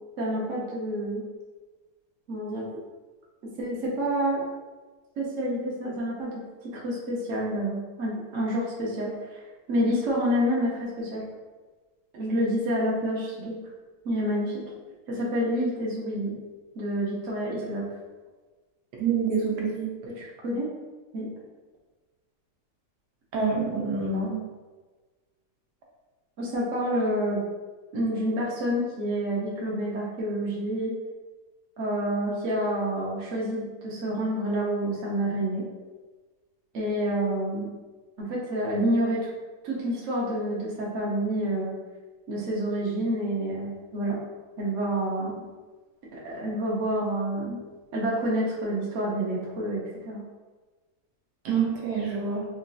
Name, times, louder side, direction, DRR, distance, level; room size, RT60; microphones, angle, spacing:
voice 1, 0.2-1.2 2.3-2.7 3.6-4.4 5.2-6.3 6.6-9.4 9.7-11.2 12.1-13.6 14.0-14.5 15.1-16.3 16.7-17.8 20.2-20.7 21.1-21.3 26.4-27.4 27.9-30.9 31.8-35.6 36.7-37.7 38.2-39.3 39.6-41.7 42.3-44.2 44.6-45.4 46.1-47.6 47.9-50.2, equal, 60° right, -5 dB, 0.9 m, -28 dB
voice 2, 19.0-19.9 23.3-24.4 51.4-52.4, right 5 dB, 75° right, -2 dB, 1.2 m, -26 dB
3.8 x 2.2 x 2.6 m, 1.3 s
omnidirectional pair, 1.7 m